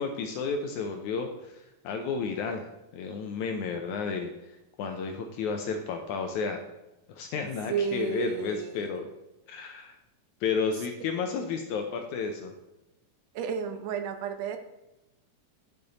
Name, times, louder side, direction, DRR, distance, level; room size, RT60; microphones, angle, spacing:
voice 1, 0.0-4.3 4.8-6.6 7.1-9.1 9.5-10.0 10.4-12.5, left 5 dB, 75° left, 5 dB, 1.9 m, -32 dB
voice 2, 7.7-9.0 13.3-14.6, right 7 dB, 80° right, 7 dB, 1.5 m, -32 dB
10.5 x 6.8 x 4.0 m, 0.96 s
omnidirectional pair, 3.9 m